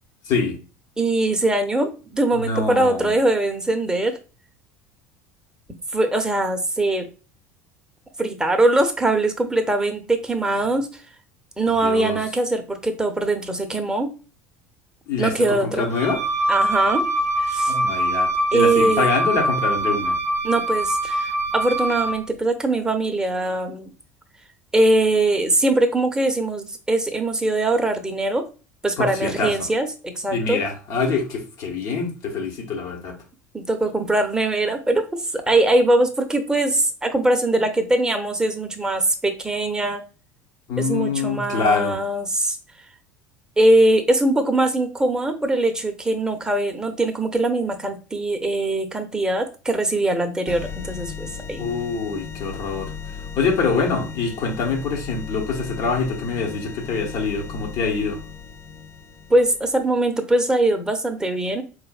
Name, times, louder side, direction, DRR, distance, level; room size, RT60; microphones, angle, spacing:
voice 1, 0.3-0.6 2.4-3.1 11.8-12.2 15.1-16.2 17.7-20.2 29.0-29.7 30.3-33.1 40.7-42.0 51.6-52.9 53.4-58.2, left 4 dB, 50° left, 1.1 m, -25 dB
voice 2, 1.0-4.2 5.9-7.1 8.2-10.9 11.6-14.1 15.2-15.9 16.5-17.1 17.4-17.7 18.5-19.1 20.4-23.9 24.7-28.5 28.8-30.6 33.5-35.0 35.3-40.0 40.8-42.6 43.6-51.7 59.3-61.6, right 2 dB, 10° right, 0.8 m, -21 dB
Wind instrument woodwind instrument, 15.9-22.2, right 1 dB, 85° right, 0.5 m, -23 dB
sound 1, 50.5-59.9, left 6 dB, 25° left, 0.5 m, -36 dB
4.3 x 2.4 x 2.4 m
figure-of-eight pair, 70°, 8 cm